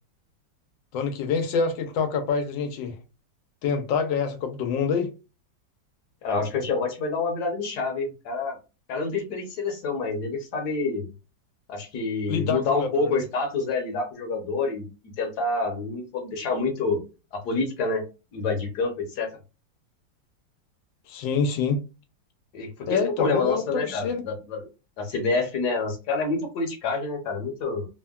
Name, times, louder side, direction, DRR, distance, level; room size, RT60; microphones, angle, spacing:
voice 1, 0.9-3.0 3.6-5.1 12.3-13.2 21.1-21.8 22.9-24.2, left 5 dB, 90° left, 1.3 m, -26 dB
voice 2, 6.2-8.6 8.9-11.1 11.7-14.9 15.2-17.0 17.3-18.0 18.3-19.3 22.5-24.7 25.0-27.9, left 3 dB, 65° left, 1.3 m, -27 dB
3.4 x 2.1 x 2.3 m
omnidirectional pair, 2.0 m